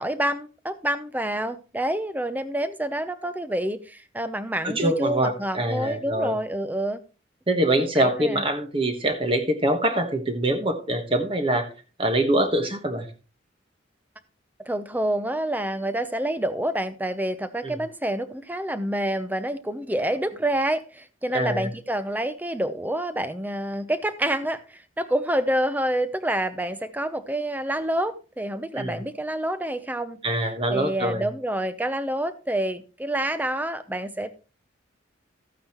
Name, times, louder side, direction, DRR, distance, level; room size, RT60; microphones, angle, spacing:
voice 1, 0.0-7.0 7.8-8.4 14.7-30.2 30.7-34.4, right 1 dB, 10° right, 12 dB, 0.6 m, -28 dB
voice 2, 4.6-6.3 7.5-11.7 12.0-13.1 17.6-17.8 21.3-21.7 28.8-29.0 30.2-31.2, right 1 dB, 25° right, 7 dB, 1.2 m, -24 dB
13.5 x 9.2 x 3.0 m, 0.34 s
head